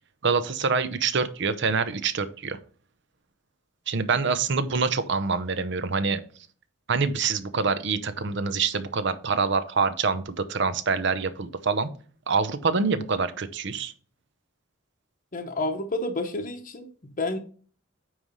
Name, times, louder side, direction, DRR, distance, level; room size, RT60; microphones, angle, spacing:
voice 1, 0.2-2.6 3.9-6.2 6.9-11.9 12.3-13.9, right 4 dB, 60° right, 12 dB, 0.7 m, -25 dB
voice 2, 15.3-16.9 17.2-17.4, left 2 dB, 40° left, 3 dB, 0.8 m, -29 dB
9.1 x 3.2 x 5.3 m, 0.42 s
head